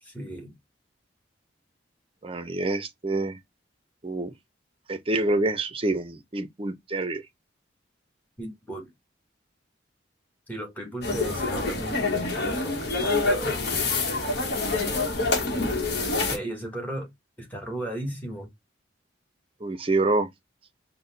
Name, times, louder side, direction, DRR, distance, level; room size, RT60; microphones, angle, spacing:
voice 1, 0.0-0.5 8.4-8.9 10.5-13.6 16.3-17.1 17.4-18.5, right 1 dB, 10° left, 1.2 m, -35 dB
voice 2, 2.2-3.4 4.0-4.3 4.9-7.2 19.6-20.3, right 2 dB, 30° right, 0.5 m, -27 dB
sound 1, 11.0-16.4, left 3 dB, 55° left, 1.0 m, -26 dB
4.0 x 2.1 x 3.8 m
head